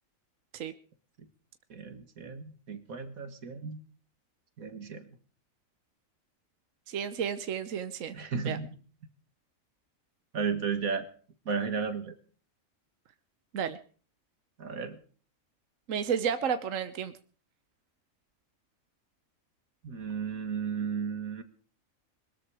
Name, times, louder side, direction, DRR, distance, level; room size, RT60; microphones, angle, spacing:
voice 1, 1.7-3.8 4.6-5.1 8.1-8.8 10.3-11.1 11.5-12.1 14.6-15.0 19.8-21.4, right 6 dB, 90° right, 10 dB, 2.2 m, -34 dB
voice 2, 6.9-8.1 8.4-8.6 13.5-13.8 15.9-17.1, right 7 dB, 70° right, 12 dB, 1.3 m, -31 dB
21.5 x 13.5 x 4.8 m, 0.43 s
omnidirectional pair, 1.4 m